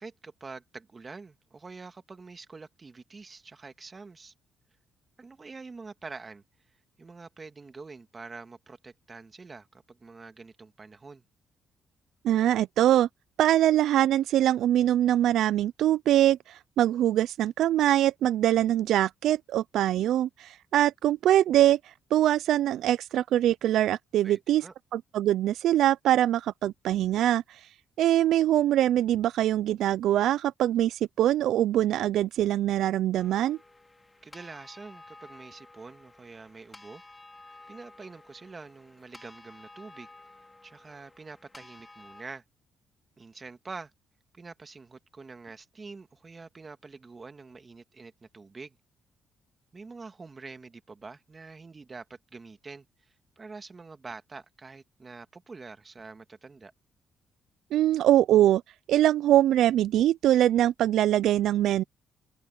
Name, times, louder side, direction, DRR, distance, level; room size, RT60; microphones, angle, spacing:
voice 1, 0.0-4.3 5.2-6.4 7.0-11.2 24.2-24.7 34.2-37.0 37.7-40.1 40.6-42.4 43.2-43.9 44.3-48.8 49.7-56.7, right 4 dB, 30° right, 1.9 m, -46 dB
voice 2, 12.2-13.1 13.4-24.6 24.9-27.6 28.0-33.6 57.7-58.6 58.9-61.8, right 12 dB, 80° right, 0.3 m, -23 dB
sound 1, 33.2-42.2, left 2 dB, 15° left, 2.4 m, -52 dB
cardioid pair, 90°, 0 cm